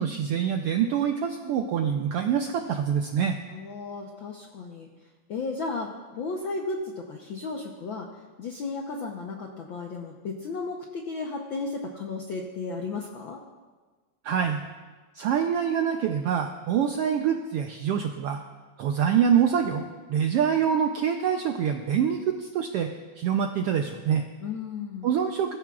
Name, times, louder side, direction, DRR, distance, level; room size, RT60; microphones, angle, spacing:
voice 1, 0.0-3.4 14.2-14.6 15.1-18.4 18.8-22.9 23.2-24.2 25.0-25.6, right 8 dB, 80° right, 4 dB, 1.3 m, -25 dB
voice 2, 3.5-4.9 5.3-8.1 8.4-13.4 24.4-25.1, left 3 dB, 75° left, 1 dB, 1.1 m, -34 dB
22.5 x 13.5 x 2.4 m, 1.4 s
omnidirectional pair, 3.4 m